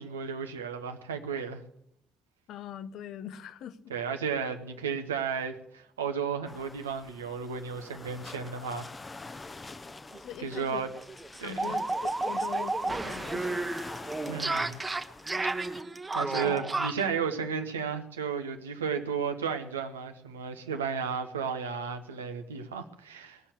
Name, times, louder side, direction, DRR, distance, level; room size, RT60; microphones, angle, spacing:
voice 1, 0.0-1.6 3.9-8.9 10.4-10.9 11.4-11.7 14.3-14.8 16.1-23.4, right 6 dB, 80° right, 0.9 m, -33 dB
voice 2, 2.5-3.9 10.1-10.9 11.4-13.7 14.1-14.3 16.4-16.6, left 10 dB, 60° left, 0.7 m, -42 dB
sound 1, 6.5-15.8, left 3 dB, 25° left, 0.8 m, -46 dB
sound 2, 10.1-10.2 10.5-10.6 11.0-17.1, right 3 dB, 25° right, 1.2 m, -32 dB
19.5 x 7.1 x 8.2 m
figure-of-eight pair, 40°, 0 cm